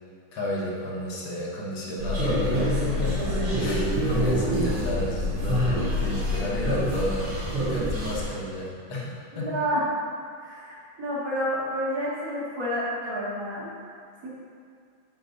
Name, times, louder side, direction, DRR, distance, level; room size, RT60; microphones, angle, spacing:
voice 1, 0.3-3.2 3.6-9.5, equal, 70° left, -4 dB, 1.9 m, -32 dB
sound 1, 2.0-8.2, equal, 90° right, 2.4 m, -26 dB
voice 2, 9.4-9.9 10.4-13.7 14.2-14.3, equal, 50° right, -7 dB, 1.7 m, -29 dB
6.9 x 5.5 x 3.9 m, 2.3 s
omnidirectional pair, 2.3 m